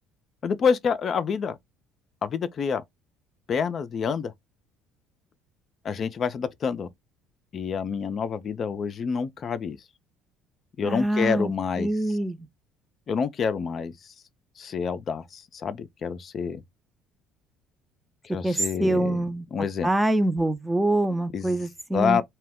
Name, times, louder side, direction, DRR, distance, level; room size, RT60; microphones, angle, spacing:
voice 1, 0.4-1.6 2.2-2.8 3.5-4.3 5.8-6.9 7.5-9.8 10.8-11.9 13.1-13.9 14.6-16.6 18.2-19.2 19.5-19.9 21.3-21.5 21.9-22.2, left 6 dB, 45° left, 0.4 m, -27 dB
voice 2, 10.8-11.5 11.8-12.4 18.4-19.4 19.8-22.2, right 1 dB, 10° right, 0.5 m, -25 dB
2.2 x 2.0 x 3.5 m
hypercardioid pair, 60°, 0 cm